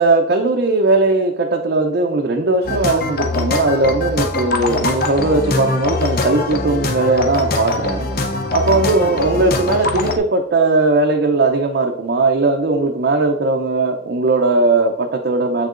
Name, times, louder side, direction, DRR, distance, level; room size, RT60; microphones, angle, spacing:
voice 1, 0.0-8.1 8.5-15.7, right 3 dB, 55° right, 2 dB, 0.5 m, -18 dB
sound 1, 2.6-10.2, left 2 dB, 50° left, 0.6 m, -22 dB
7.4 x 6.4 x 2.5 m, 0.85 s
head